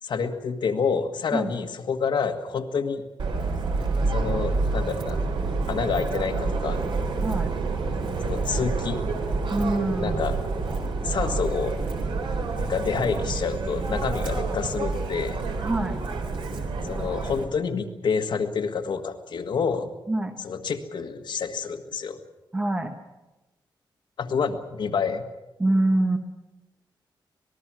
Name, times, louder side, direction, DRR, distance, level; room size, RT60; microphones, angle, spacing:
voice 1, 0.0-3.0 4.1-5.2 5.7-6.8 8.2-9.0 10.0-10.4 11.0-11.8 12.4-15.4 16.8-19.9 20.4-22.2 24.2-25.2, left 5 dB, 65° left, 6 dB, 1.6 m, -28 dB
Subway metro underground, 3.2-17.4, right 3 dB, 75° right, 3.6 m, -28 dB
voice 2, 7.2-7.5 9.5-10.2 15.6-16.0 20.1-20.3 22.5-22.9 25.6-26.2, right 1 dB, 15° right, 5 dB, 1.4 m, -25 dB
26.0 x 20.0 x 6.2 m, 1.1 s
wide cardioid pair, 155°, 8 cm